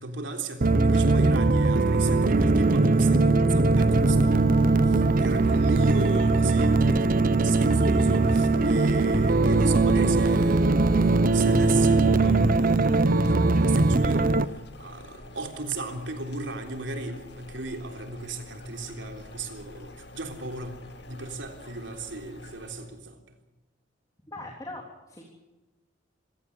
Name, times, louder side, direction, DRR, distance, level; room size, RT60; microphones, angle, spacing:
voice 1, 0.0-20.8 21.1-23.4, right 3 dB, 75° right, 4 dB, 3.6 m, -35 dB
sound 1, 0.6-14.4, right 3 dB, 50° right, 0.7 m, -21 dB
sound 2, 4.0-23.0, left 2 dB, 65° left, 2.5 m, -47 dB
voice 2, 24.3-25.2, left 2 dB, 20° left, 0 dB, 3.4 m, -41 dB
26.0 x 17.0 x 8.4 m, 1.1 s
head